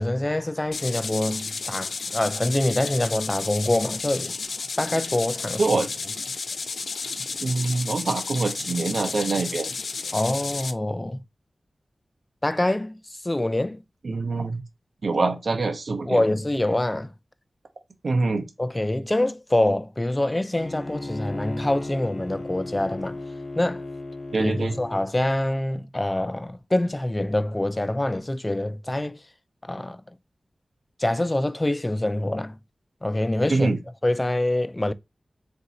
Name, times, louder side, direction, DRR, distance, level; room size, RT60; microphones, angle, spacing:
voice 1, 0.0-4.3 4.8-5.6 10.1-11.2 12.4-13.0 13.2-13.8 16.1-17.1 18.6-23.2 23.6-23.8 24.4-29.2 29.6-30.0 31.0-32.6 33.0-34.9, left 1 dB, 25° left, 0.4 m, -25 dB
sound 1, 0.7-10.7, left 4 dB, 85° left, 0.4 m, -32 dB
voice 2, 7.4-9.7 14.0-14.6 15.0-16.2 18.0-18.5 24.3-24.7 33.5-33.8, right 3 dB, 70° right, 0.8 m, -24 dB
Bowed string instrument, 20.5-25.1, left 2 dB, 45° left, 0.9 m, -35 dB
3.6 x 2.7 x 4.1 m
cardioid pair, 50°, 0 cm